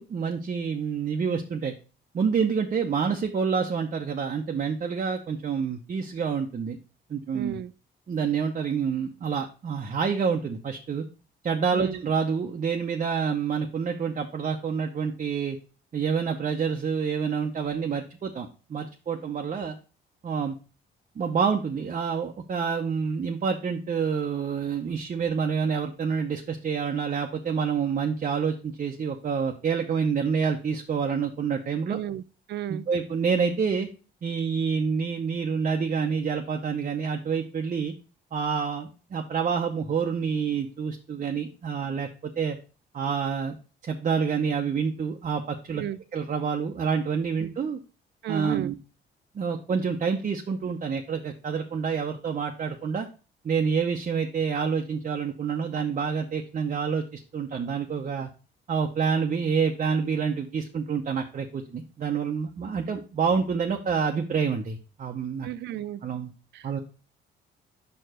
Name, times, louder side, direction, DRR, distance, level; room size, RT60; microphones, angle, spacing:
voice 1, 0.0-1.7 2.1-6.8 7.1-7.6 8.1-11.0 11.4-15.6 15.9-19.8 20.2-20.5 21.2-32.0 32.7-33.9 34.2-37.9 38.3-42.6 42.9-43.6 43.8-45.8 46.1-47.8 48.3-48.8 49.3-53.1 53.4-58.3 58.7-65.5 66.0-66.3 66.6-66.8, right 6 dB, 40° right, 0.8 m, -28 dB
voice 2, 7.3-7.7 11.7-12.0 31.9-32.2 32.5-32.9 45.7-46.0 47.4-47.5 48.2-48.7 65.4-66.0 66.5-66.7, right 11 dB, 60° right, 0.4 m, -33 dB
5.4 x 4.6 x 4.9 m
cardioid pair, 90°, 20 cm